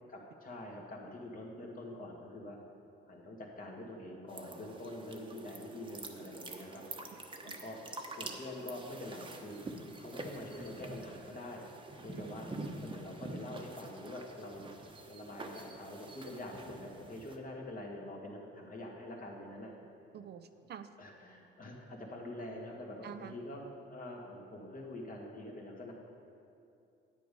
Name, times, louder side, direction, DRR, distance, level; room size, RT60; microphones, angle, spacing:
voice 1, 0.1-2.6 3.0-6.9 7.4-7.8 8.1-9.6 9.9-11.6 12.0-12.5 12.8-14.7 15.1-19.7 21.0-23.6 23.9-25.9, left 1 dB, 45° left, -1 dB, 2.1 m, -45 dB
sound 1, 4.3-17.4, right 2 dB, 25° right, 1.0 m, -47 dB
voice 2, 12.1-12.6 20.1-20.9 23.0-23.3, right 8 dB, 55° right, 10 dB, 0.5 m, -47 dB
9.7 x 8.5 x 5.4 m, 2.6 s
cardioid pair, 90°, 20 cm